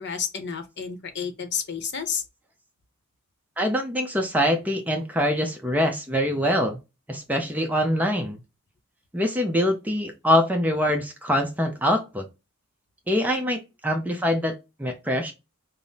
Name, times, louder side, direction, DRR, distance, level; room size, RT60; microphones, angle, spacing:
voice 1, 0.0-2.2, left 6 dB, 55° left, 0.8 m, -30 dB
voice 2, 3.6-6.8 7.1-8.4 9.1-12.3 13.1-15.3, equal, 10° right, 0.5 m, -24 dB
5.3 x 2.0 x 2.7 m
head